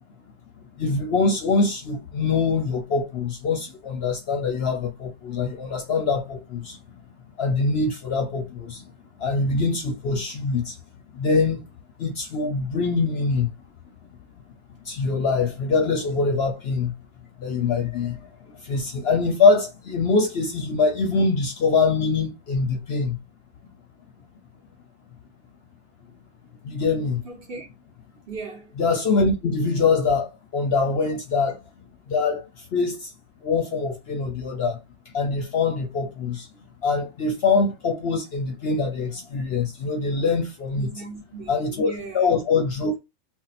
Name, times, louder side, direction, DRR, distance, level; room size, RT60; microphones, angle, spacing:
voice 1, 0.8-6.8 7.4-8.9 9.2-10.8 11.1-11.6 12.0-13.5 14.8-16.9 17.4-23.2 26.6-27.2 28.8-31.6 32.1-33.1 33.4-34.8 35.1-36.5 36.8-40.9 41.5-43.0, left 4 dB, 60° left, 0.7 m, -23 dB
voice 2, 27.2-27.7 28.3-28.8 40.7-42.3, right 3 dB, 50° right, 0.8 m, -38 dB
2.7 x 2.1 x 3.9 m
omnidirectional pair, 1.4 m